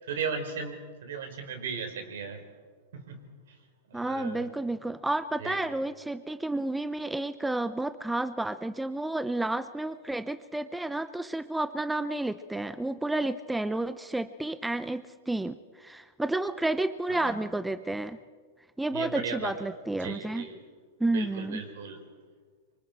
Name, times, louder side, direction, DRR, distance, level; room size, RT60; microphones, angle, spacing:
voice 1, 0.0-2.4 2.9-3.2 3.9-4.5 5.4-5.6 17.1-17.4 18.9-19.5 20.0-20.6 21.1-22.0, right 5 dB, 80° right, 6 dB, 3.8 m, -36 dB
voice 2, 3.9-18.2 18.8-20.5 21.0-21.6, right 2 dB, 5° right, 12 dB, 0.6 m, -31 dB
25.5 x 24.0 x 4.5 m, 1.5 s
hypercardioid pair, 130°, 0 cm